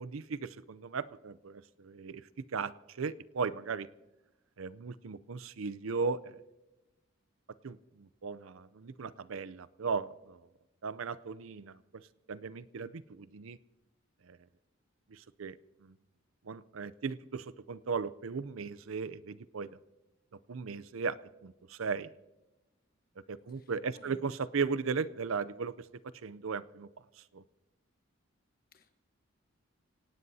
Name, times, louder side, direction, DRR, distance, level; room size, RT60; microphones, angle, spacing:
voice 1, 0.0-3.9 4.6-6.4 7.6-10.5 10.8-13.6 14.2-14.4 15.1-15.9 16.4-19.8 20.5-22.1 23.3-25.9 26.1-26.9 27.3-27.4, right 5 dB, 75° right, 17 dB, 0.5 m, -37 dB
voice 2, 23.5-24.2 28.7-29.0, left 3 dB, 45° left, 8 dB, 1.1 m, -60 dB
26.5 x 17.5 x 2.8 m, 1.0 s
head